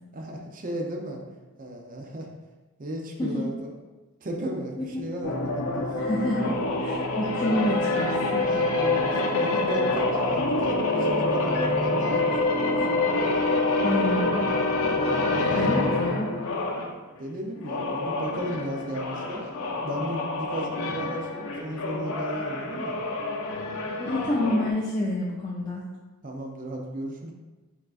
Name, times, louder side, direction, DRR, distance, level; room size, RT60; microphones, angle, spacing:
voice 1, 0.1-1.2 1.6-2.3 2.8-3.8 4.2-5.9 8.5-13.2 15.0-15.9 17.2-19.5 19.8-23.0 26.2-27.3, right 1 dB, 40° right, 1 dB, 0.5 m, -35 dB
sound 1, 5.2-16.9 17.6-24.7, left 2 dB, 80° left, 0.6 m, -26 dB
voice 2, 6.0-8.4 13.8-14.5 15.5-16.3 24.0-25.8, left 1 dB, 20° left, -6 dB, 0.5 m, -28 dB
4.6 x 3.7 x 2.4 m, 1.2 s
head